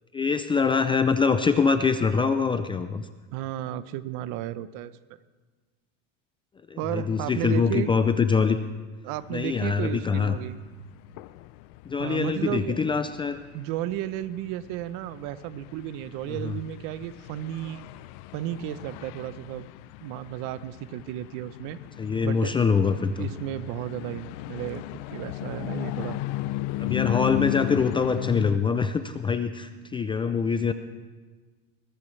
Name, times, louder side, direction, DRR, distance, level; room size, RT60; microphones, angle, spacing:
voice 1, 0.1-3.1 6.7-8.6 9.3-10.4 11.9-13.4 16.3-16.5 22.0-23.3 26.8-30.7, left 5 dB, 15° left, 9 dB, 0.3 m, -24 dB
voice 2, 3.3-5.0 6.8-7.9 9.0-10.6 12.0-12.8 13.5-17.8 18.3-19.7 20.0-21.8 22.2-22.5 23.2-24.8 25.1-26.2, right 13 dB, 60° right, 15 dB, 0.8 m, -33 dB
sound 1, 9.1-28.6, left 17 dB, 75° left, 0.7 m, -36 dB
21.0 x 18.5 x 3.2 m, 1.4 s
cardioid pair, 150°, 37 cm